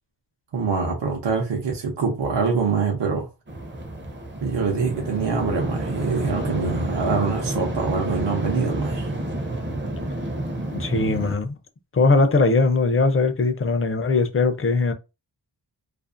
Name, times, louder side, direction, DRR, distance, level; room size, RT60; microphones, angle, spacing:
voice 1, 0.5-3.3 4.4-9.1, right 5 dB, 70° right, 0.7 m, -24 dB
sound 1, 3.5-11.3, right 1 dB, 25° right, 0.5 m, -29 dB
voice 2, 10.8-11.6 11.9-14.9, left 3 dB, 30° left, 0.4 m, -20 dB
2.5 x 2.4 x 2.4 m
wide cardioid pair, 105°, 44 cm